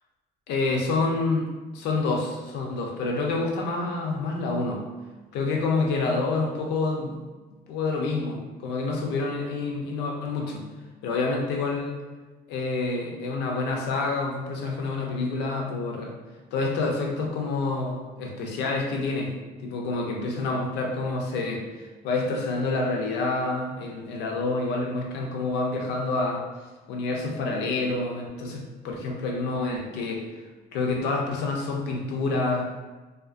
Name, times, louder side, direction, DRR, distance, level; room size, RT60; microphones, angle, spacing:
voice 1, 0.5-1.5 1.7-4.8 5.3-7.2 7.7-10.6 11.0-11.9 12.5-16.1 16.5-19.3 19.6-26.4 26.9-30.3 30.7-32.7, left 3 dB, 85° left, 0 dB, 0.6 m, -28 dB
2.4 x 2.4 x 2.4 m, 1.3 s
cardioid pair, 110°, 17 cm